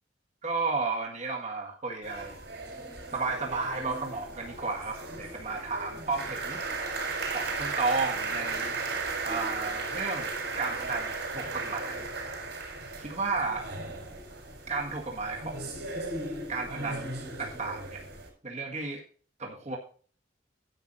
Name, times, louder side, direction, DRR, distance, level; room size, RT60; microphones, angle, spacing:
voice 1, 0.4-2.4 3.1-6.6 7.3-8.8 9.2-10.3 10.6-12.1 13.0-13.7 14.7-15.7 16.5-18.0 18.4-19.0 19.4-19.8, right 4 dB, 40° right, 0 dB, 1.8 m, -33 dB
sound 1, 2.0-18.3, right 3 dB, 70° right, 4.7 m, -36 dB
10.5 x 8.4 x 4.2 m, 0.41 s
head